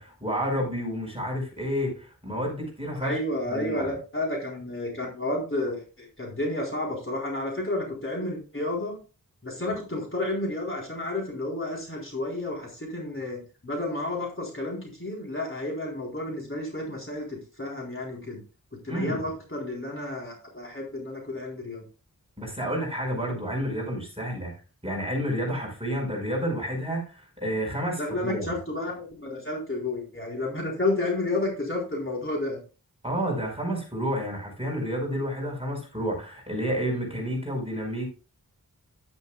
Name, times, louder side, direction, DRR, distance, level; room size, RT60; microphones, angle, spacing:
voice 1, 0.0-3.2 3.5-3.9 18.9-19.2 22.4-24.5 24.8-28.5 33.0-38.1, equal, 15° right, 0 dB, 5.2 m, -30 dB
voice 2, 3.0-9.0 9.4-18.4 18.8-21.8 28.0-32.6, left 2 dB, 35° left, -2 dB, 4.0 m, -31 dB
11.5 x 10.5 x 2.3 m, 0.33 s
wide cardioid pair, 60°, 36 cm